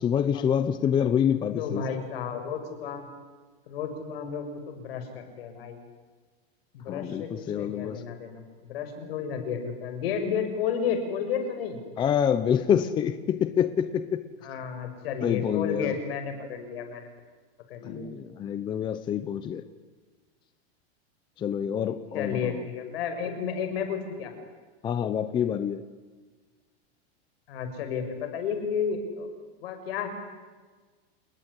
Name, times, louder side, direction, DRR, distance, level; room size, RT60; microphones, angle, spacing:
voice 1, 0.0-1.8 6.9-8.0 12.0-14.2 15.2-15.9 17.8-19.6 21.4-22.6 24.8-25.8, left 8 dB, 15° left, 11 dB, 0.8 m, -27 dB
voice 2, 1.6-3.1 3.7-5.8 6.7-8.4 8.7-11.8 14.4-17.1 17.7-18.1 22.1-24.3 27.5-29.3 29.6-30.1, left 6 dB, 65° left, 7 dB, 6.6 m, -32 dB
29.0 x 20.5 x 9.9 m, 1.4 s
supercardioid pair, 170°, 32 cm